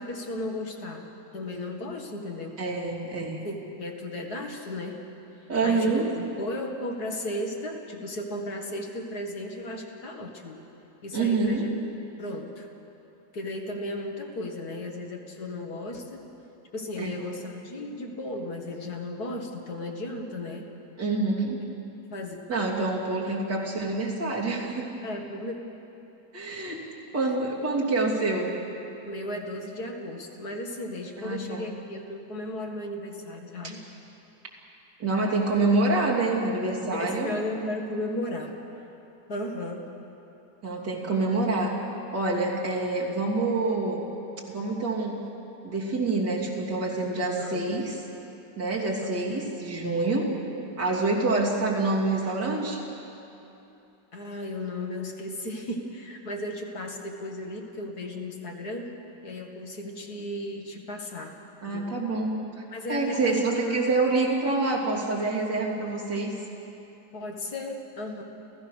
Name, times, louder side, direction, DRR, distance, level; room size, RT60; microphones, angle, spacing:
voice 1, 0.0-2.6 3.4-5.1 5.6-10.6 11.0-11.7 12.2-12.7 13.3-16.2 16.7-20.7 22.1-22.4 25.0-25.6 29.0-33.8 36.9-38.6 39.3-39.9 47.4-47.6 49.0-49.2 54.1-59.0 59.2-61.9 62.7-63.8 67.1-68.2, left 1 dB, 60° left, 2 dB, 2.4 m, -35 dB
voice 2, 2.6-3.4 5.5-6.1 11.1-11.7 17.0-17.1 21.0-21.6 22.5-24.9 26.3-26.8 27.1-28.6 31.2-31.7 33.6-33.7 35.0-37.4 40.6-41.7 42.1-44.0 44.5-45.2 45.6-48.0 48.6-50.3 50.8-52.8 61.6-62.6 62.9-66.3, right 3 dB, 75° right, -4 dB, 3.7 m, -26 dB
30.0 x 15.5 x 6.4 m, 3.0 s
omnidirectional pair, 1.9 m